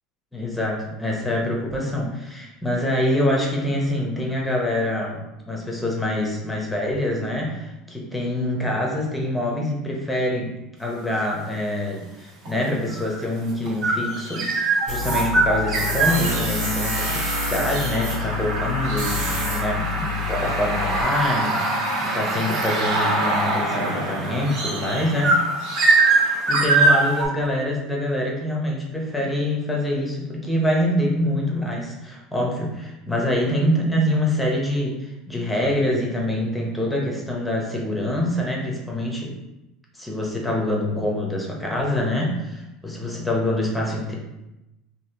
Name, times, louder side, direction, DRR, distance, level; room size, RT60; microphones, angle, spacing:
voice 1, 0.3-10.5 10.8-25.4 26.2-39.3 39.9-44.1, left 1 dB, 5° left, -2 dB, 0.8 m, -25 dB
sound 1, 11.0-11.4 12.5-27.3, right 2 dB, 60° right, 1.3 m, -23 dB
Tools, 14.9-21.0, left 3 dB, 80° right, 1.4 m, -28 dB
3.1 x 2.7 x 2.8 m, 0.95 s
supercardioid pair, 120°, 0 cm